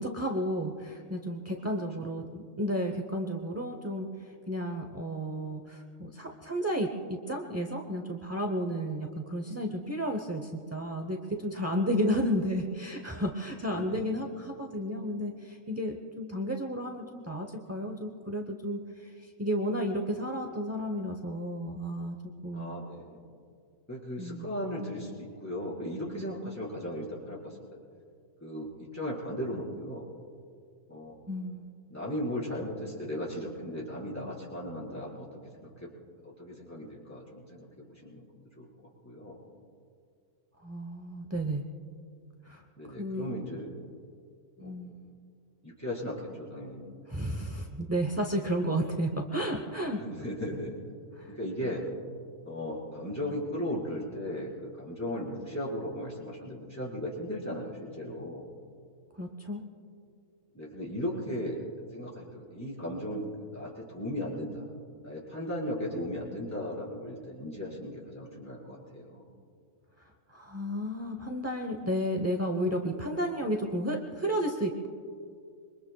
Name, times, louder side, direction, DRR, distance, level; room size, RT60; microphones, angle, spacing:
voice 1, 0.0-4.1 4.5-18.8 19.4-22.1 22.4-22.7 24.2-24.5 31.3-31.6 40.6-41.6 42.5-42.6 43.0-43.3 44.6-45.1 47.1-50.0 51.2-51.3 59.2-59.6 70.3-74.9, equal, 15° right, 3 dB, 0.5 m, -32 dB
voice 2, 11.8-12.2 13.7-14.1 22.5-23.3 23.9-27.7 28.4-30.1 30.9-31.2 31.9-35.3 35.5-35.9 36.2-38.2 38.5-38.7 39.0-39.4 42.8-43.7 44.6-44.8 45.6-46.9 50.0-50.7 51.3-51.9 52.4-58.5 60.5-61.6 61.9-64.6 65.0-69.2, left 1 dB, 10° left, -6 dB, 4.6 m, -37 dB
26.5 x 23.5 x 2.3 m, 2.3 s
omnidirectional pair, 1.6 m